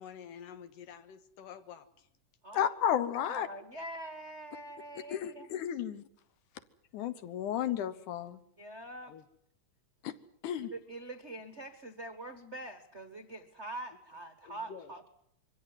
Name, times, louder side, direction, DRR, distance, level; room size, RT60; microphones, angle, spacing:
voice 1, 0.0-2.1 5.4-5.5 5.9-6.0 9.1-9.3 14.4-14.9, left 7 dB, 85° left, 3.1 m, -49 dB
voice 2, 2.5-3.5 5.1-6.0 6.9-8.4 10.0-10.1 10.4-10.7, left 9 dB, 70° left, 2.5 m, -32 dB
voice 3, 3.3-5.5 8.6-9.1 10.6-15.1, right 2 dB, 40° right, 0.9 m, -44 dB
24.0 x 16.0 x 9.7 m
omnidirectional pair, 3.8 m